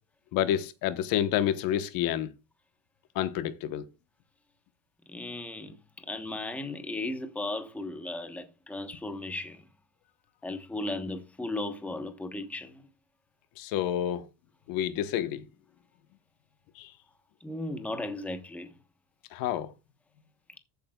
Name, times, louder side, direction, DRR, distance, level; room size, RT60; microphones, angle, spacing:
voice 1, 0.3-2.3 3.1-3.8 13.6-14.3 14.7-15.4 16.8-16.9 19.3-19.7, left 11 dB, 55° left, 1.2 m, -29 dB
voice 2, 5.1-5.8 6.1-9.6 10.4-12.8 17.4-18.7, left 2 dB, 5° left, 1.1 m, -36 dB
14.0 x 8.5 x 2.3 m
cardioid pair, 155°, 40 cm